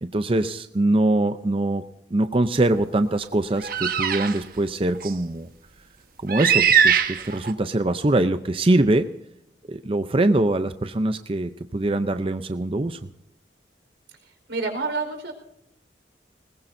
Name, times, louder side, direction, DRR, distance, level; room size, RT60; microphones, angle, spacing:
voice 1, 0.0-1.8 2.1-5.5 6.2-9.1 9.7-13.0, right 2 dB, 30° right, 10 dB, 0.6 m, -23 dB
sound 1, 3.6-4.4 5.0-5.1 6.3-7.5, right 8 dB, 50° right, 1.3 m, -20 dB
voice 2, 14.5-15.3, right 3 dB, 85° right, 4 dB, 4.5 m, -28 dB
20.5 x 20.5 x 2.7 m, 0.75 s
head